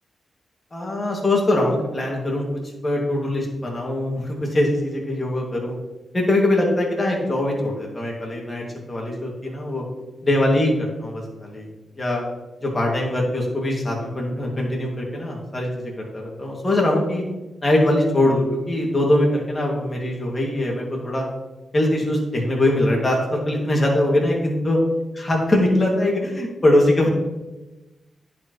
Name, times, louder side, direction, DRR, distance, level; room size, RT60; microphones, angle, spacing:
voice 1, 0.7-2.5 2.8-5.8 6.1-9.8 10.2-11.7 12.0-12.2 12.6-17.2 17.6-21.2 21.7-24.8 25.2-27.1, left 1 dB, 30° left, -2 dB, 2.4 m, -22 dB
10.5 x 4.9 x 3.2 m, 1.1 s
cardioid pair, 70°, 0 cm